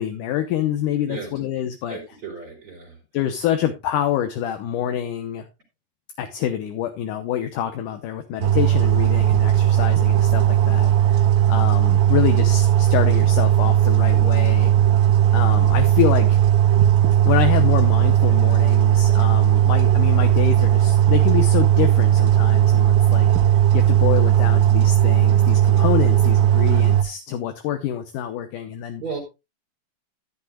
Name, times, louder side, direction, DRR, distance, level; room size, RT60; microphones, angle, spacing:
voice 1, 0.0-2.0 3.1-5.5 6.2-14.7 15.3-16.4 17.3-29.0, left 11 dB, 75° left, 7 dB, 2.3 m, -26 dB
voice 2, 1.9-3.0 29.0-29.2, right 5 dB, 40° right, 2 dB, 4.1 m, -34 dB
sound 1, 8.4-27.0, right 11 dB, 85° right, 2.9 m, -17 dB
14.0 x 10.5 x 2.3 m, 0.25 s
omnidirectional pair, 4.0 m